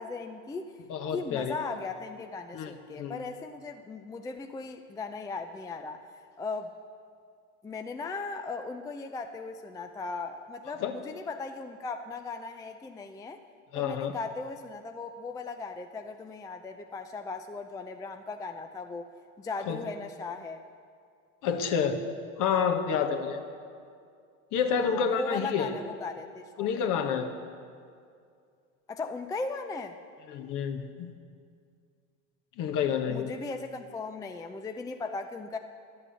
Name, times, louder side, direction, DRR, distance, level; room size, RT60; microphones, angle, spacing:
voice 1, 0.0-0.8 1.1-6.0 6.4-6.7 7.6-13.4 13.7-19.1 19.4-20.6 24.8-26.7 28.9-30.0 33.1-35.6, left 4 dB, 10° left, 6 dB, 0.4 m, -37 dB
voice 2, 0.9-1.5 2.5-3.2 10.8-10.9 13.7-14.1 19.7-19.8 21.4-22.0 22.4-23.4 24.5-25.7 26.6-27.3 30.3-31.1 32.6-33.3, left 7 dB, 50° left, 6 dB, 1.3 m, -29 dB
11.0 x 8.5 x 7.1 m, 2.3 s
hypercardioid pair, 100°, 39 cm